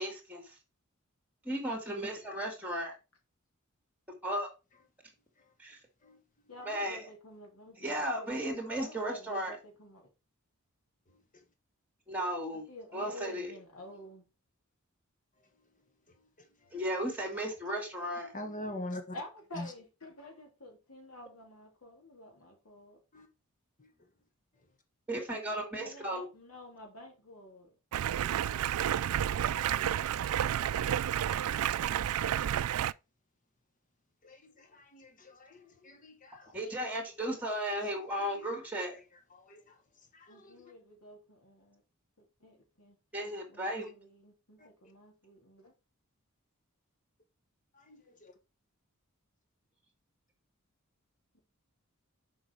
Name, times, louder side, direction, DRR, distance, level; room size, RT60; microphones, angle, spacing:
voice 1, 0.0-0.4 1.4-3.0 4.2-4.5 5.6-5.8 6.7-7.0 7.8-9.6 12.1-12.6 12.9-13.5 16.7-18.3 25.1-26.3 36.5-39.0 43.1-43.9, right 1 dB, 10° right, 2.5 m, -35 dB
voice 2, 6.5-8.4 8.7-10.0 12.5-14.3 19.1-23.0 25.7-27.7 40.3-41.8 42.4-43.0 43.5-45.7, left 1 dB, 75° left, 3.1 m, -50 dB
voice 3, 18.3-19.0 19.6-19.7 23.1-23.3 23.8-23.9 28.2-28.7 32.0-32.1 34.2-36.5 38.3-38.5 39.3-39.6 40.1-40.5 47.9-48.3, left 1 dB, 40° left, 1.5 m, -44 dB
Stream, 27.9-32.9, right 10 dB, 75° right, 0.3 m, -30 dB
7.0 x 5.2 x 4.8 m
head